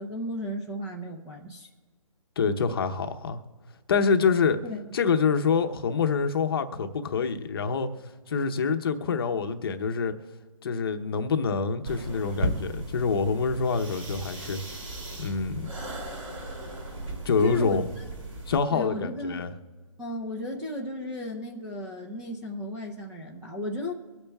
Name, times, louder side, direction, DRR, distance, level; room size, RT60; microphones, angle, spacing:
voice 1, 0.0-1.7 4.6-4.8 17.4-18.0 18.7-19.4 20.0-23.9, left 1 dB, 5° right, 0.5 m, -34 dB
voice 2, 2.4-3.4 3.9-4.6 4.9-7.9 8.3-10.1 10.6-14.8 15.2-15.7 17.2-17.9 18.5-19.5, left 5 dB, 40° left, 0.8 m, -26 dB
sound 1, 11.8-18.6, right 1 dB, 60° right, 2.9 m, -36 dB
24.0 x 8.8 x 2.3 m
hypercardioid pair, 160°, 18 cm